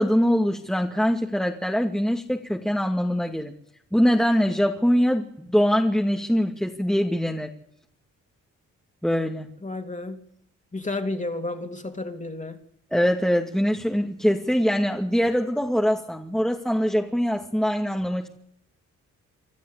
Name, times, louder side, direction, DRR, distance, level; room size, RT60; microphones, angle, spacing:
voice 1, 0.0-3.5 3.9-7.5 9.0-9.5 12.9-18.3, equal, ahead, 2 dB, 2.4 m, -23 dB
voice 2, 9.6-10.2 10.7-12.6, left 2 dB, 20° left, 5 dB, 3.3 m, -31 dB
25.5 x 13.0 x 8.5 m, 0.72 s
supercardioid pair, 60°, 33 cm